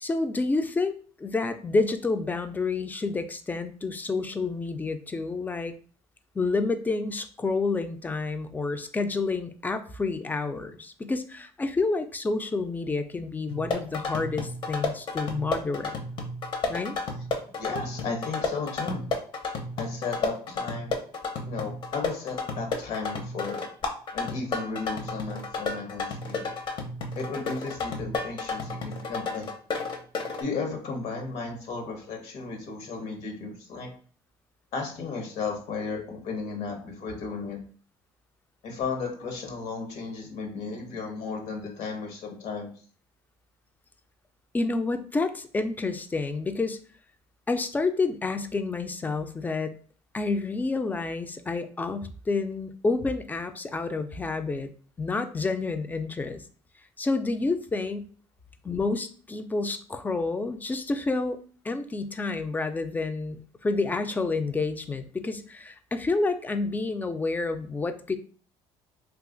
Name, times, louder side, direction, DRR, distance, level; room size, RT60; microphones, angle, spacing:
voice 1, 0.0-5.7 6.4-15.9 16.7-17.0 44.5-46.8 47.5-49.7 50.1-54.7 55.0-56.4 57.0-58.1 58.6-68.2, left 3 dB, 15° left, 9 dB, 0.3 m, -29 dB
sound 1, 13.5-30.4, left 3 dB, 45° left, 0.7 m, -32 dB
voice 2, 17.2-19.0 19.8-20.9 21.4-23.6 24.1-26.5 27.2-29.5 30.4-33.9 34.7-37.6 38.6-42.7, left 4 dB, 70° left, 2 dB, 1.0 m, -34 dB
2.7 x 2.3 x 3.7 m, 0.44 s
cardioid pair, 115°, 11 cm